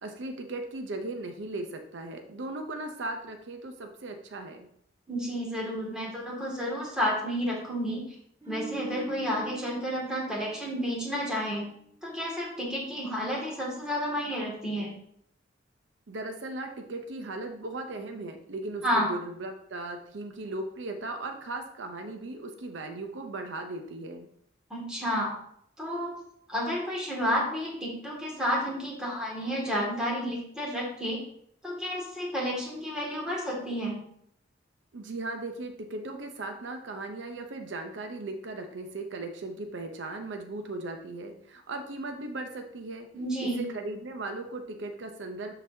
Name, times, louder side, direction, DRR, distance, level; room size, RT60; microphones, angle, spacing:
voice 1, 0.0-4.7 16.1-24.3 34.9-43.1 43.4-45.5, right 2 dB, 70° right, 4 dB, 0.7 m, -37 dB
voice 2, 5.1-8.0 8.4-11.6 12.0-14.9 18.8-19.1 24.7-25.3 25.8-26.2 26.5-31.2 31.6-34.0 43.1-43.6, equal, 5° right, -4 dB, 2.1 m, -31 dB
sound 1, 8.4-11.7 12.0-12.2, right 2 dB, 20° right, 2.7 m, -43 dB
11.5 x 4.0 x 2.7 m, 0.70 s
head